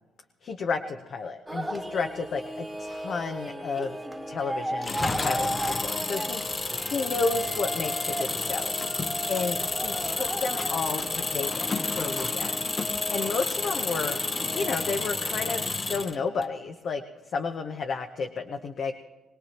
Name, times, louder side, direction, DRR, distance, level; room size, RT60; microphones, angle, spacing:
voice 1, 0.4-4.0 4.3-5.5 5.8-6.4 6.8-8.7 9.3-12.7 13.1-14.2 14.5-15.6 15.9-17.0 17.3-18.9, left 4 dB, 55° left, 5 dB, 0.9 m, -32 dB
sound 1, 1.5-15.6, right 1 dB, 10° right, 1.4 m, -36 dB
Engine, 4.8-16.4, left 3 dB, 30° left, 0.7 m, -31 dB
22.5 x 18.0 x 3.0 m, 1.2 s
cardioid pair, 90°, 0 cm